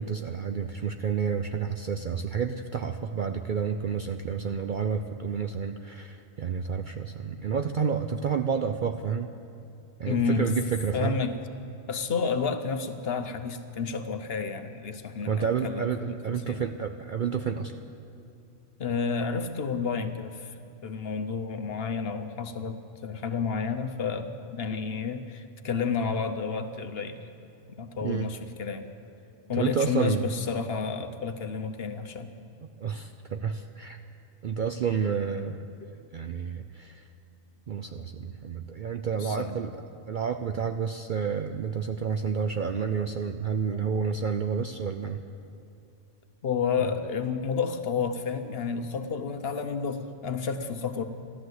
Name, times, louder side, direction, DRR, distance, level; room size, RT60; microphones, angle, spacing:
voice 1, 0.0-9.3 10.0-11.2 15.3-17.8 28.0-28.3 29.5-30.3 32.6-34.0 34.4-35.6 36.1-37.1 37.7-45.2 46.8-46.9, right 6 dB, 55° right, 7 dB, 0.5 m, -30 dB
voice 2, 10.1-10.6 10.9-11.3 11.9-15.9 16.5-16.6 18.8-20.6 20.8-27.2 27.8-28.9 29.5-32.3 39.1-39.6 43.7-43.9 46.4-51.0, left 5 dB, 55° left, 8 dB, 1.0 m, -30 dB
14.5 x 12.0 x 8.0 m, 2.7 s
omnidirectional pair, 1.3 m